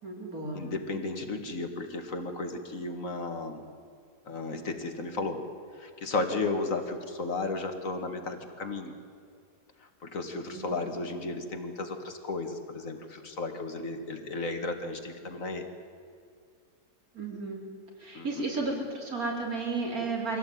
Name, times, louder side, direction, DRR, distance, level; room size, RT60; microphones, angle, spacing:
voice 1, 0.0-0.6 0.9-1.1 10.5-10.7 17.1-17.6 18.0-20.4, right 3 dB, 60° right, 0 dB, 4.2 m, -33 dB
voice 2, 0.5-3.6 4.3-5.4 5.8-8.9 10.0-15.7 18.1-18.5, left 3 dB, 55° left, 6 dB, 2.3 m, -34 dB
24.0 x 17.0 x 9.3 m, 2.3 s
omnidirectional pair, 1.7 m